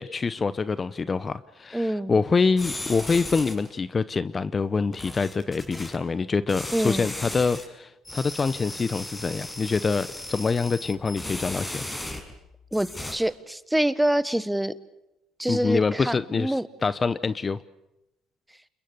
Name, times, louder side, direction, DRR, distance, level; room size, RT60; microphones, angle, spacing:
voice 1, 0.0-11.8 15.5-16.6 16.8-17.6, left 4 dB, 30° left, 15 dB, 0.8 m, -25 dB
voice 2, 1.7-2.2 6.7-7.1 12.7-14.7 15.4-16.7, right 1 dB, 5° right, 15 dB, 1.3 m, -26 dB
sound 1, 2.6-3.7 4.9-5.9 6.5-7.6 8.0-12.4 12.7-13.2, left 1 dB, 15° left, 6.1 m, -36 dB
28.5 x 22.0 x 6.9 m, 0.92 s
supercardioid pair, 80°, 0 cm